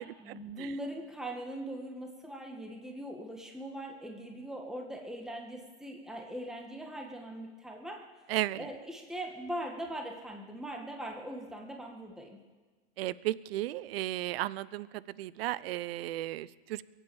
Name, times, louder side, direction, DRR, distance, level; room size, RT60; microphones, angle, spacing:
voice 1, 0.0-8.1 8.6-12.4, right 1 dB, ahead, 2 dB, 1.8 m, -41 dB
voice 2, 8.3-8.6 13.0-16.8, right 15 dB, 60° right, 20 dB, 0.7 m, -34 dB
22.5 x 8.4 x 7.2 m, 1.4 s
hypercardioid pair, 110°, 33 cm